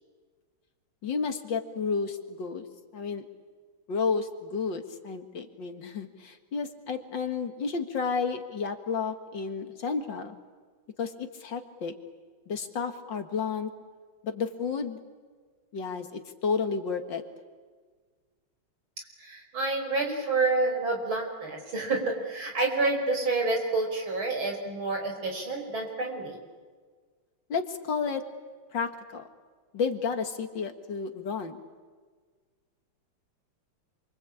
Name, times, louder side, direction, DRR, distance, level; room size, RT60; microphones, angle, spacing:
voice 1, 1.0-2.6 2.9-3.2 3.9-10.4 11.0-11.9 12.5-13.7 14.2-15.0 15.7-17.2 27.5-28.2 28.7-29.2 29.7-31.6, left 5 dB, 60° left, 7 dB, 2.4 m, -31 dB
voice 2, 19.2-26.4, right 3 dB, 70° right, 2 dB, 5.9 m, -28 dB
27.5 x 24.0 x 8.6 m, 1.5 s
omnidirectional pair, 2.3 m